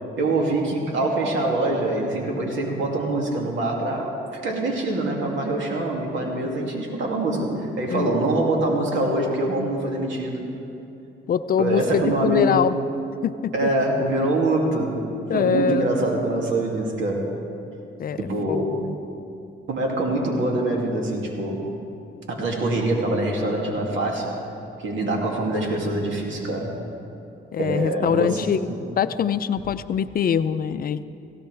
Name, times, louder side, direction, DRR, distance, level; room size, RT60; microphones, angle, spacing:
voice 1, 0.2-10.5 11.6-12.7 13.5-15.0 15.3-17.3 18.2-18.8 19.7-21.7 22.3-24.4 24.8-26.8 27.6-28.8, right 2 dB, 70° right, -1 dB, 2.6 m, -24 dB
voice 2, 11.3-12.8 13.2-13.5 15.3-15.9 18.0-18.2 18.5-19.0 27.5-28.7 29.0-31.0, left 8 dB, 50° left, 13 dB, 0.5 m, -23 dB
17.5 x 17.0 x 3.4 m, 2.8 s
cardioid pair, 90°, 20 cm